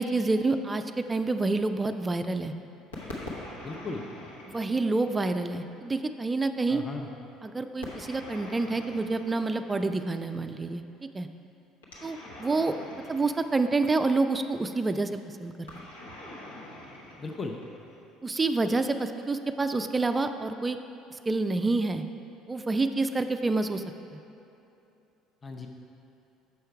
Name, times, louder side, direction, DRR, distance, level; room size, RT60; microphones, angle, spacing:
voice 1, 0.0-2.5 4.5-6.8 7.4-10.8 11.1-11.3 12.0-12.8 13.1-15.7 18.2-20.8 21.1-22.0 22.5-23.8 24.1-24.2, right 3 dB, 20° right, 8 dB, 0.3 m, -28 dB
sound 1, 2.9-5.6 7.8-10.2 11.8-14.3 15.7-18.1, left 1 dB, 80° left, 1.0 m, -43 dB
voice 2, 3.6-4.1 6.7-7.1 17.2-17.6 25.4-25.7, left 3 dB, 25° left, 2 dB, 0.6 m, -36 dB
6.9 x 5.6 x 4.5 m, 2.8 s
figure-of-eight pair, 55°, 0 cm